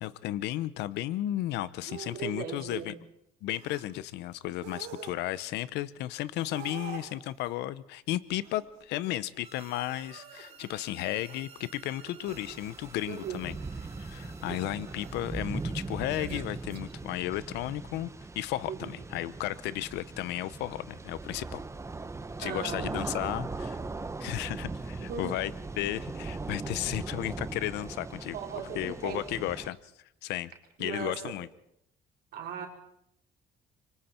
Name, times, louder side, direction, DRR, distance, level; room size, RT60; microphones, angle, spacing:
voice 1, 0.0-2.9 3.4-13.5 14.0-21.6 22.4-23.8 24.2-25.5 25.8-28.4 28.7-29.8 30.2-30.5 30.8-31.5, left 14 dB, 85° left, 17 dB, 0.8 m, -34 dB
sound 1, 1.9-2.2 2.6-2.9 3.5-3.8 4.5-5.5 6.4-7.5 8.4-9.6 9.9-13.0 13.6-14.0 14.5-14.7 16.0-16.8, right 9 dB, 85° right, 4.8 m, -48 dB
voice 2, 2.1-3.0 13.1-13.4 14.5-14.6 14.9-15.0 18.7-18.9 22.4-22.9 25.0-25.4 28.3-29.2 30.8-31.3 32.3-32.7, right 8 dB, 70° right, 1 dB, 4.3 m, -38 dB
sound 2, 9.4-17.4, right 5 dB, 35° right, 3.2 m, -55 dB
sound 3, 12.3-29.7, right 3 dB, 15° right, 1.1 m, -39 dB
26.0 x 24.0 x 4.4 m, 0.76 s
cardioid pair, 110°, 17 cm